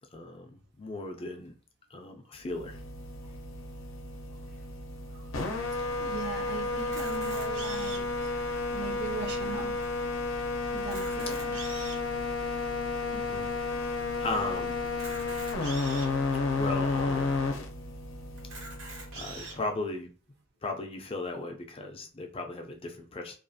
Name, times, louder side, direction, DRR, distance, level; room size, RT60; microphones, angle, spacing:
voice 1, 0.1-1.5 1.9-2.8 11.3-11.5 13.1-13.5 13.8-14.8 16.3-17.4 19.1-20.1 20.6-23.4, left 2 dB, 30° left, 4 dB, 0.4 m, -37 dB
sound 1, 2.4-19.6, left 3 dB, 75° left, 0.5 m, -32 dB
voice 2, 5.7-10.1 10.7-11.6, right 5 dB, 55° right, 3 dB, 0.5 m, -40 dB
Camera, 6.8-8.2 8.8-8.9 9.1-9.3 9.8-9.9 10.7-12.1 12.7-12.8 14.9-16.1 16.8-16.9 17.2-17.3 18.4-19.6, right 3 dB, 85° right, 0.9 m, -43 dB
2.4 x 2.3 x 2.6 m, 0.38 s
head